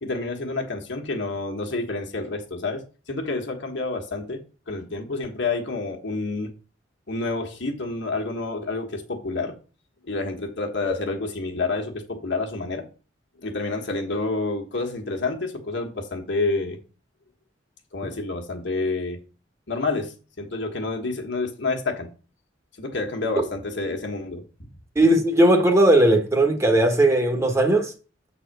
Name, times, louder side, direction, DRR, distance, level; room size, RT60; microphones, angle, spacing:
voice 1, 0.0-6.5 7.1-9.6 10.0-12.8 13.4-16.8 17.9-19.2 19.7-22.1 22.8-24.5, left 3 dB, 65° left, 1.5 m, -29 dB
voice 2, 24.9-27.9, right 1 dB, 15° right, 1.1 m, -18 dB
7.0 x 4.1 x 6.6 m
head